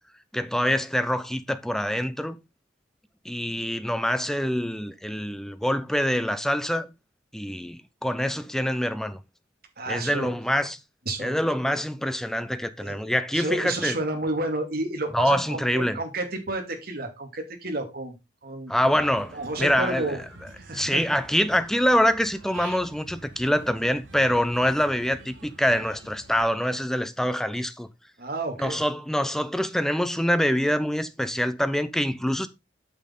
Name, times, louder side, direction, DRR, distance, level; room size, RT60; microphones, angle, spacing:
voice 1, 0.3-2.4 3.2-6.9 7.3-9.2 9.9-10.8 11.2-14.0 15.1-16.0 18.7-20.2 20.7-27.9 28.6-32.5, equal, ahead, 0.6 m, -25 dB
voice 2, 9.8-10.3 11.1-11.4 12.8-13.0 13.3-18.1 18.4-18.7 19.3-20.2 20.6-21.0 28.2-28.8, right 2 dB, 50° right, 2.4 m, -31 dB
Human voice / Bird, 18.7-26.4, right 2 dB, 80° right, 1.5 m, -46 dB
8.5 x 6.4 x 3.8 m
head